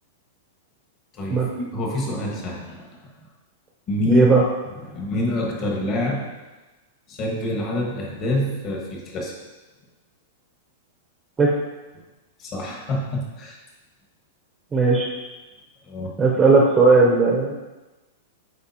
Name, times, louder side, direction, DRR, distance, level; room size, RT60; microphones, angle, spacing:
voice 1, 1.1-2.9 3.9-4.2 4.8-6.3 7.1-9.3 12.4-13.6 15.8-16.1, left 1 dB, 35° left, -2 dB, 1.5 m, -26 dB
voice 2, 4.1-4.4 11.4-11.5 14.7-15.1 16.2-17.5, right 3 dB, 15° right, -1 dB, 0.7 m, -16 dB
8.5 x 4.1 x 2.9 m, 1.1 s
supercardioid pair, 145°, 0 cm